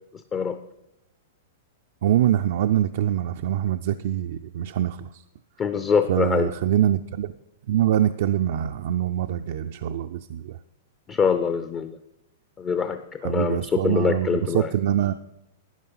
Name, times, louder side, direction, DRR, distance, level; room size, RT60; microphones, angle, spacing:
voice 1, 2.0-5.2 6.1-7.3 7.7-10.6 13.2-15.1, right 11 dB, 65° right, 7 dB, 0.4 m, -24 dB
voice 2, 5.6-6.5 11.1-12.0 12.6-14.7, left 6 dB, 25° left, 10 dB, 0.5 m, -24 dB
12.5 x 9.1 x 5.6 m, 0.87 s
hypercardioid pair, 130°, 0 cm